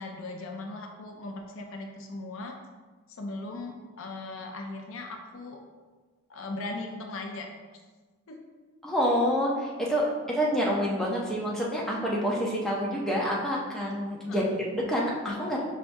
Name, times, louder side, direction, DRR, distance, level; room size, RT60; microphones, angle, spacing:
voice 1, 0.0-2.6 3.2-5.6 6.3-7.5 8.3-8.4 14.3-14.5, left 2 dB, 60° left, 3 dB, 0.5 m, -38 dB
voice 2, 8.8-15.6, equal, ahead, -5 dB, 0.6 m, -27 dB
5.7 x 3.4 x 2.6 m, 1.4 s
head